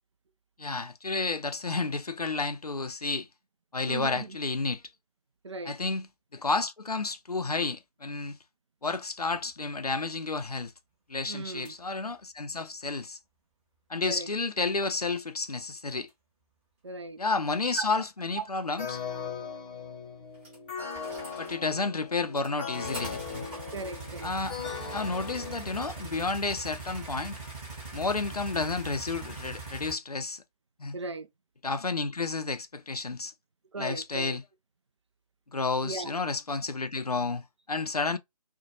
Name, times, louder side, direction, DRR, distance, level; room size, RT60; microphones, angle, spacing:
voice 1, 0.6-3.3 3.7-4.8 5.7-6.1 6.3-8.4 8.8-10.7 11.1-13.2 13.9-16.1 17.2-19.0 21.4-23.5 24.2-24.6 24.9-27.4 27.9-30.4 30.8-31.0 31.6-33.3 33.8-34.4 35.5-38.2, left 3 dB, 90° left, 0.5 m, -31 dB
voice 2, 3.9-4.4 5.4-5.8 11.3-11.7 14.0-14.3 16.8-17.2 17.8-17.9 18.4-18.5 23.7-24.3 30.9-31.3 33.7-34.4 35.8-36.1, right 3 dB, 50° right, 0.4 m, -37 dB
sound 1, 11.6-11.7 16.1-16.2 20.4-21.9 22.2-29.9, right 3 dB, 15° right, 1.0 m, -42 dB
sound 2, 18.8-26.4, left 6 dB, 15° left, 0.5 m, -39 dB
4.2 x 2.2 x 2.8 m
figure-of-eight pair, 150°, 19 cm